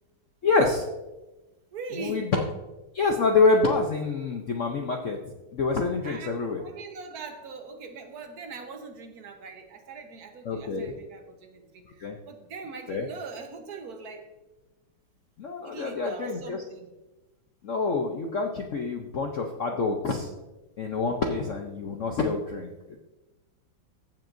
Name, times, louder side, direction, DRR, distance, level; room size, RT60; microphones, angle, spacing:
voice 1, 0.4-0.9 2.0-2.4 2.9-5.2 5.5-6.6 10.4-10.9 12.0-12.2 12.9-13.0 15.4-16.6 17.6-20.3 20.8-23.0, left 3 dB, 75° left, 3 dB, 0.6 m, -26 dB
voice 2, 1.7-2.3 6.0-14.3 15.6-16.9, right 4 dB, 55° right, 5 dB, 1.4 m, -41 dB
14.5 x 7.6 x 2.6 m, 1.1 s
omnidirectional pair, 2.3 m